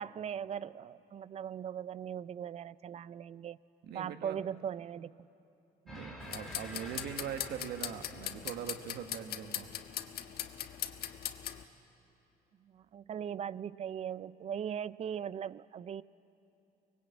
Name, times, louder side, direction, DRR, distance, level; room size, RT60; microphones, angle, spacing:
voice 1, 0.0-3.6 3.9-5.1 12.7-16.0, right 8 dB, 40° right, 18 dB, 0.5 m, -39 dB
voice 2, 3.8-4.4 5.8-9.7, right 8 dB, 75° right, 7 dB, 1.6 m, -42 dB
sound 1, 5.9-8.8, left 1 dB, 5° left, 3.4 m, -49 dB
sound 2, 6.2-11.6, left 11 dB, 70° left, 1.2 m, -41 dB
24.0 x 20.0 x 8.5 m, 2.9 s
cardioid pair, 110°, 17 cm